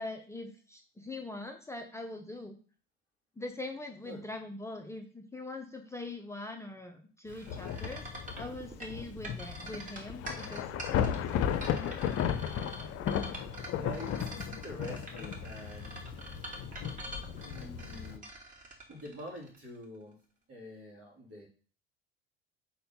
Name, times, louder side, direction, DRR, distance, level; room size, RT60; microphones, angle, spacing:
voice 1, 0.0-2.6 3.4-11.5 11.7-12.0, left 2 dB, 10° left, 4 dB, 0.7 m, -43 dB
Thunder / Rain, 7.3-18.2, left 9 dB, 50° left, 0.7 m, -35 dB
sound 1, 7.3-19.8, right 1 dB, 25° right, 2.6 m, -45 dB
voice 2, 13.7-16.4 17.4-18.3 18.9-20.2 20.5-21.5, equal, 45° right, -1 dB, 3.1 m, -46 dB
4.4 x 4.3 x 5.4 m, 0.40 s
hypercardioid pair, 65°, 31 cm